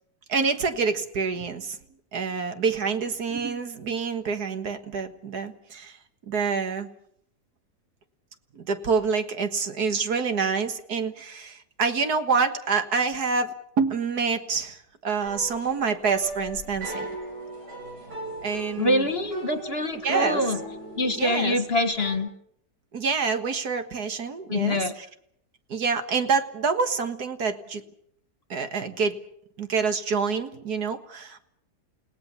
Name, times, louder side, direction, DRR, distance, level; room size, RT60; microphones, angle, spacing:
voice 1, 0.3-1.8 2.1-6.0 6.3-6.9 8.5-17.1 18.4-19.1 20.0-20.4 21.1-21.6 22.9-25.1 25.7-27.8 28.5-29.2 29.6-31.4, right 5 dB, 70° right, 8 dB, 2.0 m, -27 dB
sound 1, 15.2-22.2, right 2 dB, 90° right, 6.8 m, -37 dB
voice 2, 18.8-20.6 20.9-22.3 24.5-24.9, left 1 dB, 40° left, 8 dB, 1.8 m, -25 dB
29.5 x 17.5 x 7.0 m, 0.72 s
omnidirectional pair, 1.7 m